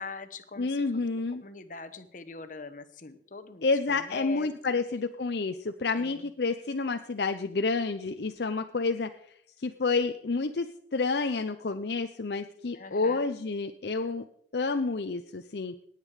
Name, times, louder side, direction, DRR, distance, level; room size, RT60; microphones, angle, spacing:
voice 1, 0.0-1.0 1.4-4.5 5.9-6.3 12.7-13.3, left 4 dB, 45° left, 10 dB, 1.0 m, -42 dB
voice 2, 0.6-1.4 3.6-14.3 14.5-15.7, left 3 dB, 65° left, 7 dB, 0.6 m, -29 dB
19.0 x 8.3 x 4.9 m, 0.68 s
head